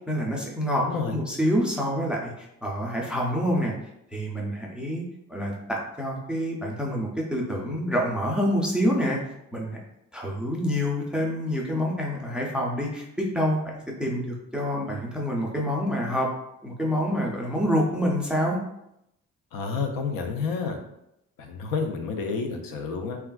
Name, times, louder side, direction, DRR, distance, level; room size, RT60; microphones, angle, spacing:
voice 1, 0.0-3.7 4.1-5.0 5.3-9.2 9.5-9.8 10.1-16.3 16.6-18.6, equal, 5° right, -2 dB, 0.3 m, -27 dB
voice 2, 0.8-1.1 19.5-20.8 21.4-23.2, left 5 dB, 85° left, 4 dB, 0.5 m, -29 dB
3.3 x 2.3 x 2.2 m, 0.82 s
cardioid pair, 140°, 33 cm